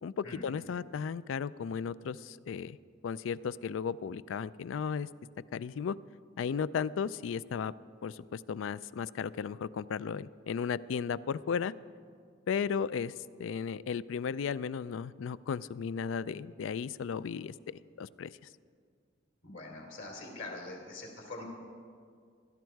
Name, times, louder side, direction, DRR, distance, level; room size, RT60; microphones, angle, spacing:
voice 1, 0.0-2.8 3.0-5.1 5.5-6.0 6.4-7.7 8.0-11.7 12.5-13.1 13.4-18.3, left 6 dB, 85° left, 18 dB, 0.3 m, -35 dB
voice 2, 19.4-21.4, left 2 dB, 65° left, 1 dB, 3.1 m, -43 dB
17.0 x 12.5 x 4.6 m, 2.1 s
head